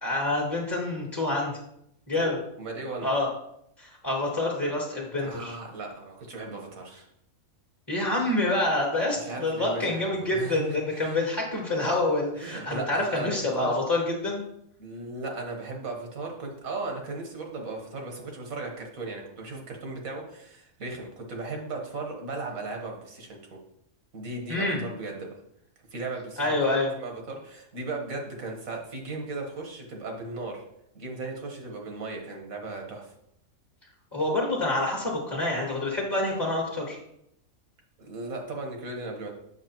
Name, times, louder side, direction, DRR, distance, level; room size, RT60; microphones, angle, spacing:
voice 1, 0.0-1.5 2.1-2.4 3.0-3.3 3.8-5.5 7.9-14.4 24.5-24.8 26.4-26.9 34.1-37.0, left 2 dB, 15° left, -3 dB, 1.4 m, -27 dB
voice 2, 2.6-3.1 5.2-7.1 9.0-11.2 12.4-13.7 14.8-23.6 24.1-25.3 25.9-26.6 27.0-30.6 31.0-33.1 38.0-39.3, right 3 dB, 75° right, 1 dB, 1.8 m, -36 dB
8.0 x 6.3 x 3.0 m, 0.75 s
omnidirectional pair, 1.5 m